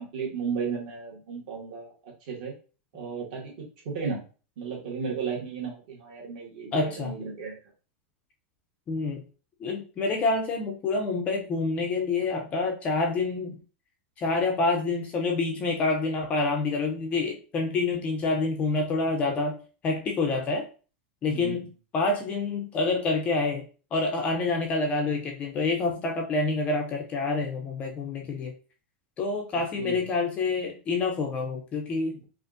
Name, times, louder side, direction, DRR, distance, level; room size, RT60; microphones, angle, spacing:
voice 1, 0.0-1.9 2.2-2.5 2.9-3.5 3.8-4.2 4.6-7.6 21.3-21.6 29.7-30.0, right 5 dB, 50° right, -2 dB, 1.6 m, -34 dB
voice 2, 6.7-7.1 8.9-9.2 9.6-13.6 14.2-19.6 19.8-20.7 21.2-21.7 21.9-23.6 23.9-28.5 29.2-32.2, left 3 dB, 20° left, 2 dB, 0.4 m, -27 dB
5.1 x 2.5 x 2.5 m, 0.36 s
supercardioid pair, 175°, 7 cm